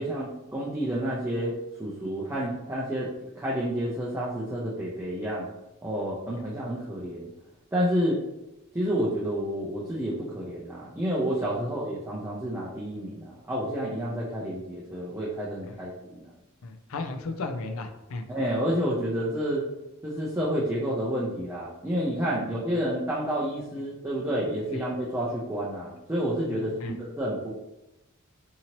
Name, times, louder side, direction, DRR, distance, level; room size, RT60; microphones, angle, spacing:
voice 1, 0.0-3.1 3.4-5.5 5.8-7.3 7.7-8.2 8.7-16.3 18.3-19.7 20.0-27.5, equal, 10° right, -6 dB, 0.4 m, -29 dB
voice 2, 16.6-18.3 26.5-26.9, left 3 dB, 65° left, 7 dB, 0.4 m, -35 dB
2.7 x 2.7 x 2.9 m, 0.97 s
head